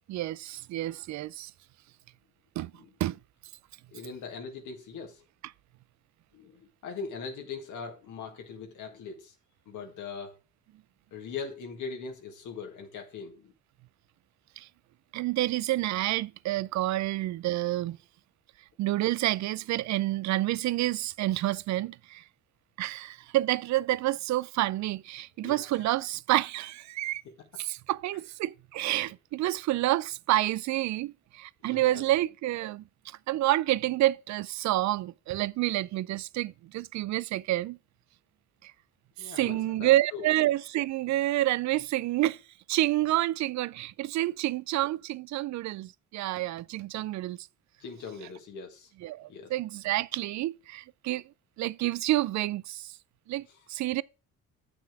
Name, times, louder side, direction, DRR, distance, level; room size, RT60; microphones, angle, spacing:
voice 1, 0.1-1.5 2.6-3.2 14.6-14.7 15.1-18.0 18.8-22.2 22.8-27.2 27.6-37.8 38.6-38.7 39.2-42.4 42.7-47.5 49.0-51.3 51.6-53.0 53.3-54.0, right 16 dB, 70° right, 0.4 m, -29 dB
voice 2, 3.9-5.2 6.3-9.3 9.7-10.4 11.1-13.5 25.4-25.8 27.3-27.4 31.6-32.0 39.2-40.3 47.8-48.9 49.3-49.5, left 5 dB, 80° left, 1.8 m, -41 dB
7.7 x 6.0 x 4.6 m
cardioid pair, 90°, 30 cm